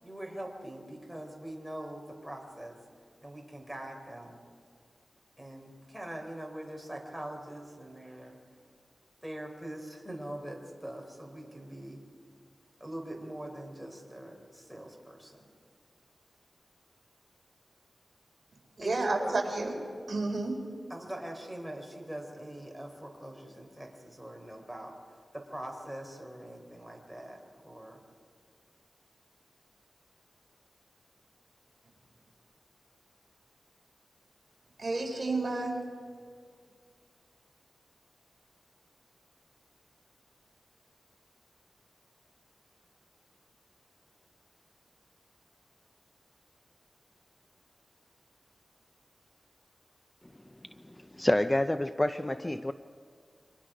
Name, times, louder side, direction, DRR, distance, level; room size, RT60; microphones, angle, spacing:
voice 1, 0.0-2.8 3.2-4.4 5.4-8.4 9.2-12.0 12.8-15.4 18.8-19.3 20.9-24.9 25.3-28.0, right 1 dB, ahead, 0 dB, 3.9 m, -43 dB
voice 2, 18.8-19.7 20.1-20.6 34.8-35.8, right 2 dB, 45° right, 1 dB, 4.3 m, -30 dB
voice 3, 50.9-52.7, left 1 dB, 15° left, 9 dB, 0.5 m, -28 dB
30.0 x 25.0 x 5.1 m, 2.1 s
wide cardioid pair, 110°, 0 cm